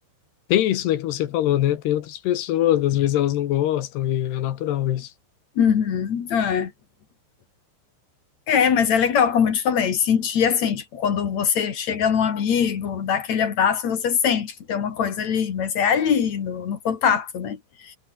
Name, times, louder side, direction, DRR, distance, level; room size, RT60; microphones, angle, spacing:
voice 1, 0.5-5.1, left 12 dB, 65° left, 3.3 m, -22 dB
voice 2, 5.6-6.7 8.5-18.0, left 7 dB, 45° left, 2.8 m, -22 dB
omnidirectional pair, 5.4 m